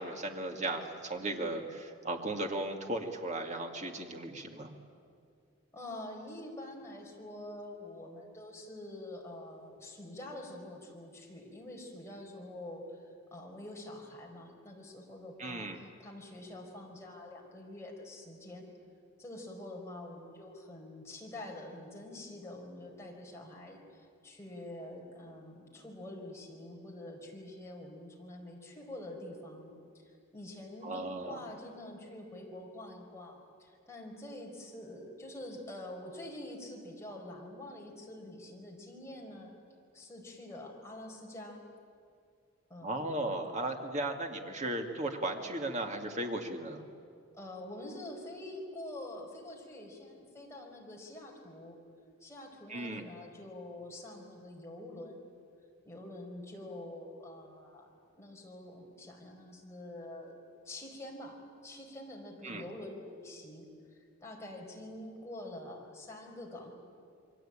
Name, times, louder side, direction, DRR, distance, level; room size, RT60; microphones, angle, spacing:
voice 1, 0.0-4.7 15.4-15.8 30.8-31.4 42.8-46.8 52.7-53.0 62.4-62.6, right 1 dB, 35° right, 3 dB, 2.3 m, -36 dB
voice 2, 5.7-18.7 19.2-39.5 39.9-41.6 42.7-42.9 47.3-51.8 52.2-55.3 55.8-60.4 60.6-61.4 61.6-63.6 64.2-66.7, left 1 dB, 15° left, -1 dB, 4.7 m, -46 dB
28.0 x 22.5 x 8.9 m, 2.3 s
head